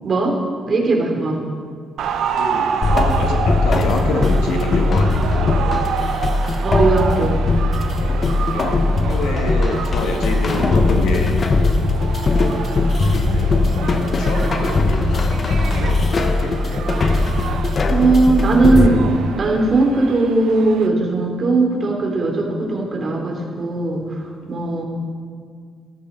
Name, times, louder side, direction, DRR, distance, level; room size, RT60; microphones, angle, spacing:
voice 1, 0.0-0.4 0.7-1.4 6.6-7.4 17.9-19.1 19.4-24.2 24.5-24.8, right 3 dB, 45° right, 0 dB, 3.2 m, -18 dB
sound 1, 2.0-20.9, right 7 dB, 75° right, 0.9 m, -29 dB
voice 2, 2.4-5.7 8.0-11.4 11.8-12.2 13.0-16.6 24.2-24.6, left 2 dB, 85° left, 2 dB, 1.8 m, -27 dB
sound 2, 2.8-18.9, left 2 dB, 40° left, 1.1 m, -19 dB
13.5 x 13.0 x 4.0 m, 2.1 s
cardioid pair, 90°, 0 cm